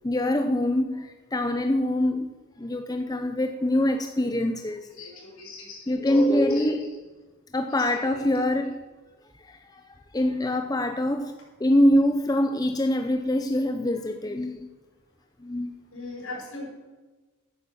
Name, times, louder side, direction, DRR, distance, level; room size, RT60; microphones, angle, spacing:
voice 1, 0.0-4.9 5.9-7.0 7.5-8.8 9.4-9.8 10.1-11.3 11.6-14.7 15.4-15.7, left 1 dB, 15° left, 0.5 m, -24 dB
voice 2, 4.9-6.7 7.7-8.3 15.9-16.7, left 3 dB, 75° left, 5.3 m, -41 dB
11.5 x 9.4 x 6.9 m
head